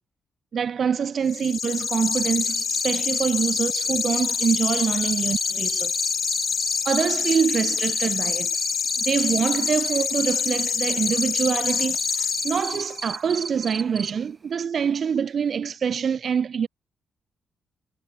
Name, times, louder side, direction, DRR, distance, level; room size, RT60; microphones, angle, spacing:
voice 1, 0.5-6.0 6.9-8.5 9.0-16.7, right 7 dB, 55° right, 0.4 m, -25 dB
sound 1, 1.3-13.1, left 6 dB, 50° left, 0.9 m, -26 dB
Cricket, 2.1-14.1, right 3 dB, 30° right, 1.5 m, -32 dB
cardioid pair, 85°, 0 cm